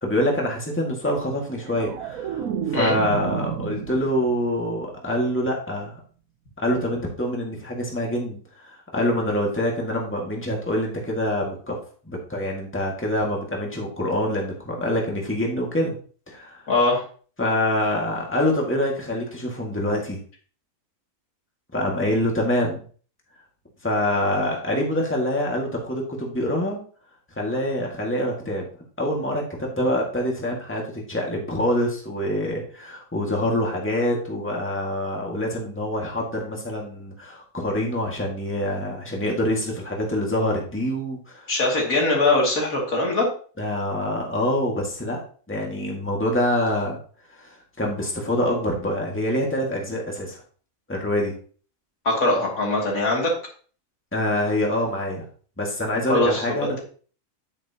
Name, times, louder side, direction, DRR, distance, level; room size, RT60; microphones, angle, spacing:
voice 1, 0.0-6.0 6.6-11.8 12.0-15.9 16.3-16.7 17.4-20.2 21.7-22.8 23.8-26.8 27.4-28.7 29.0-41.5 43.6-45.2 45.5-47.0 47.3-50.4 50.9-51.3 54.1-55.3 55.6-56.8, left 1 dB, 10° left, -1 dB, 1.9 m, -25 dB
sound 1, 1.4-4.6 4.9-5.3, right 8 dB, 80° right, 1.2 m, -31 dB
voice 2, 16.7-17.0 41.5-43.3 52.0-53.3 56.1-56.4, left 2 dB, 80° left, -2 dB, 3.1 m, -21 dB
9.3 x 9.2 x 2.9 m, 0.42 s
omnidirectional pair, 1.4 m